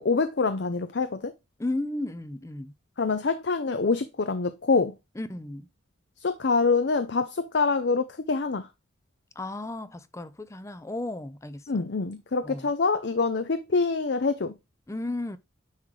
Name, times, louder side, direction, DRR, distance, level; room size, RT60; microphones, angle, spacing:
voice 1, 0.0-1.3 3.0-4.9 6.2-8.7 11.7-14.5, left 4 dB, 60° left, 0.6 m, -25 dB
voice 2, 1.6-2.7 5.2-5.7 9.4-11.8 12.4-12.7 14.9-15.4, left 2 dB, 15° left, 0.4 m, -34 dB
9.6 x 3.7 x 3.1 m
head